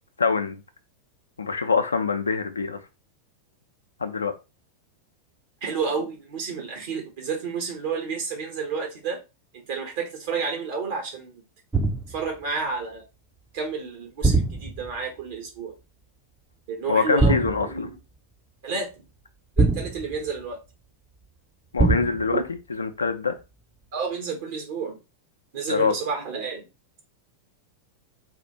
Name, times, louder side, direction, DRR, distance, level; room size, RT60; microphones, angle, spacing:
voice 1, 0.2-0.6 1.4-2.8 4.0-4.3 16.9-17.9 21.7-22.4 22.7-23.4 25.7-25.9, left 5 dB, 75° left, 0.6 m, -24 dB
voice 2, 5.6-9.2 9.5-11.4 12.1-13.1 13.5-15.7 16.7-18.0 18.6-18.9 19.6-20.6 22.3-22.4 23.9-25.0 25.5-26.6, right 5 dB, 55° right, 1.1 m, -30 dB
sound 1, 11.7-12.3 14.2-15.0 17.2-17.8 19.6-20.4 21.8-22.4, right 3 dB, 10° right, 0.6 m, -22 dB
4.2 x 2.5 x 4.2 m
figure-of-eight pair, 90°, 0 cm